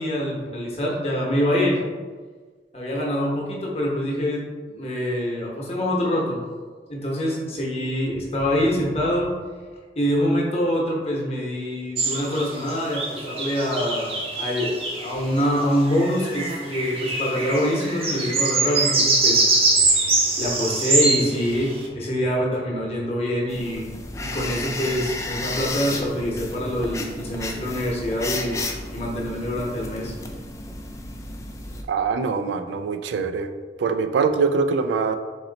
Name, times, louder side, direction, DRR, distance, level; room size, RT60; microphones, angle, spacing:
voice 1, 0.0-1.8 2.7-6.4 6.9-9.3 10.0-19.4 19.8-19.9 20.4-23.9 24.2-28.6 28.9-30.1, equal, 35° left, -2 dB, 0.9 m, -25 dB
sound 1, 12.0-15.1 15.9-21.8, right 3 dB, 35° right, 0.6 m, -23 dB
sound 2, 23.5-31.8, left 2 dB, 15° left, 0.3 m, -33 dB
voice 2, 31.9-33.5 33.8-35.2, right 5 dB, 85° right, 9 dB, 0.3 m, -23 dB
4.0 x 3.0 x 3.8 m, 1.5 s
head